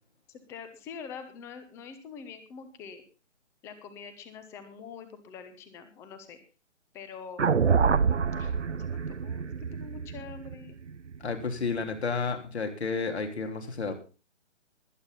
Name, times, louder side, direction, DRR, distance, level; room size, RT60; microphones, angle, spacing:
voice 1, 0.3-3.0 3.6-6.4 6.9-7.4 8.3-10.8, left 6 dB, 5° left, 10 dB, 0.9 m, -45 dB
sound 1, 7.4-11.7, right 6 dB, 70° right, 0.9 m, -27 dB
voice 2, 11.2-13.9, left 4 dB, 60° left, 5 dB, 3.4 m, -31 dB
20.5 x 8.9 x 3.9 m, 0.33 s
figure-of-eight pair, 145°, 37 cm